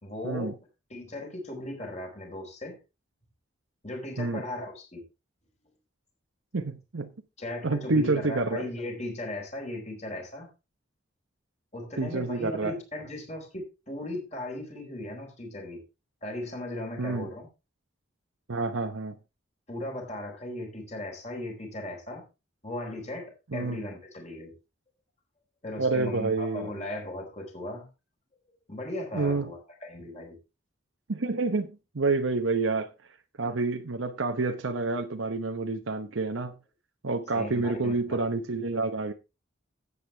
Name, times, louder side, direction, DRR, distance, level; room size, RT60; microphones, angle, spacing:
voice 1, 0.0-0.6 0.9-2.8 3.8-5.0 7.4-10.5 11.7-15.8 16.2-17.5 19.7-22.2 22.6-24.5 25.6-27.9 28.7-30.4 37.3-38.2, left 1 dB, 35° left, 4.4 m, -37 dB
voice 2, 6.5-7.1 7.6-8.6 12.0-12.7 17.0-17.3 18.5-19.1 23.5-23.8 25.8-26.7 29.1-29.5 31.1-32.9 33.4-36.5 37.0-39.1, right 3 dB, 90° right, 0.9 m, -28 dB
13.0 x 8.5 x 3.4 m
head